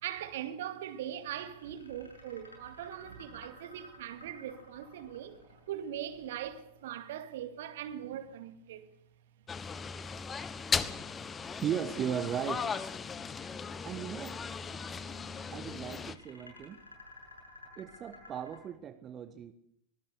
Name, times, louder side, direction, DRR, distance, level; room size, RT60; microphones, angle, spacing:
voice 1, 0.0-8.9, right 10 dB, 55° right, 2.2 m, -41 dB
sound 1, 0.8-7.0 9.8-11.4 12.0-13.3 14.6-18.6, left 2 dB, 80° left, 7.4 m, -56 dB
sound 2, 9.5-16.2, left 5 dB, 20° left, 1.3 m, -37 dB
voice 2, 11.6-13.0 13.8-14.4 15.5-16.8 17.8-19.5, right 8 dB, 25° right, 1.2 m, -37 dB
24.0 x 19.0 x 6.8 m
figure-of-eight pair, 90°, 0 cm